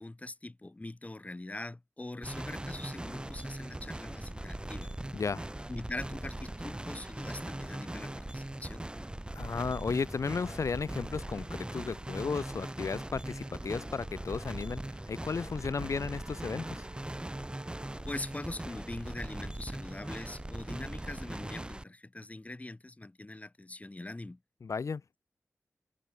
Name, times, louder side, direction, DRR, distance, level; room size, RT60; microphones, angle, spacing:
voice 1, 0.0-4.9 5.7-8.9 18.1-24.4, left 2 dB, 25° left, 2.1 m, -43 dB
sound 1, 2.2-21.8, right 1 dB, 15° right, 6.1 m, -40 dB
voice 2, 5.1-5.5 9.3-14.8 15.1-16.9 24.6-25.0, left 5 dB, 75° left, 1.2 m, -34 dB
sound 2, 14.8-20.2, right 3 dB, 50° right, 6.1 m, -57 dB
wide cardioid pair, 70°, 5 cm